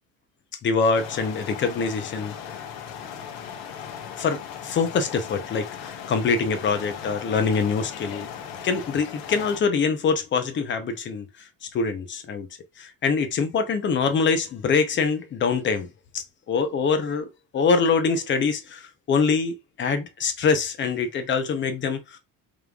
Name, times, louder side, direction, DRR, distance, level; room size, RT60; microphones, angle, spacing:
voice 1, 0.6-2.4 4.2-8.3 8.6-11.3 11.7-12.5 12.8-15.9 16.1-22.2, left 5 dB, 35° left, 0.7 m, -24 dB
sound 1, 0.9-9.6, left 8 dB, 90° left, 1.0 m, -38 dB
5.2 x 3.2 x 2.3 m
cardioid pair, 175°, 35 cm